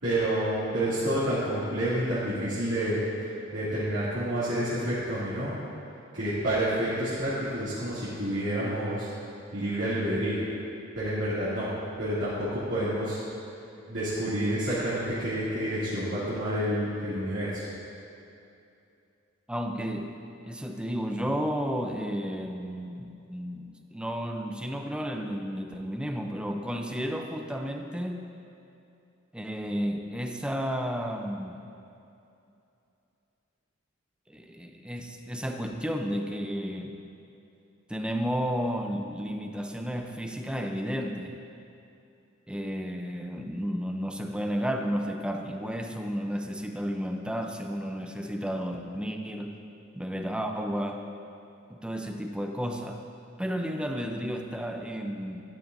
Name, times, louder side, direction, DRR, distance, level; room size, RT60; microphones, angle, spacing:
voice 1, 0.0-3.0 3.5-5.6 6.1-9.1 9.5-10.4 10.9-11.7 12.0-13.2 13.9-17.7, right 1 dB, 70° right, -14 dB, 2.7 m, -29 dB
voice 2, 19.5-20.1 20.5-28.3 29.3-31.6 34.3-37.0 37.9-41.4 42.5-49.6 49.9-51.0 51.7-53.0 53.4-55.4, equal, 5° right, 3 dB, 0.6 m, -32 dB
12.0 x 11.5 x 2.7 m, 2.7 s
head